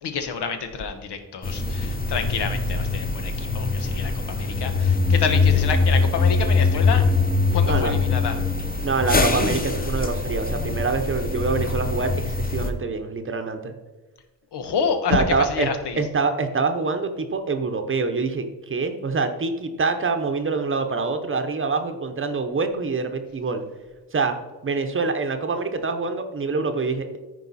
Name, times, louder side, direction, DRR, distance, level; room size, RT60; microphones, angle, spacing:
voice 1, 0.0-7.0 7.5-8.4 14.5-16.0, left 5 dB, 90° left, 7 dB, 1.2 m, -28 dB
sound 1, 1.4-12.7, left 3 dB, 20° left, 0.8 m, -22 dB
voice 2, 8.8-13.7 15.1-15.7 16.0-23.6 24.1-24.4 24.6-27.2, right 4 dB, 30° right, 7 dB, 0.8 m, -25 dB
14.0 x 4.7 x 4.1 m, 1.2 s
wide cardioid pair, 155°, 40 cm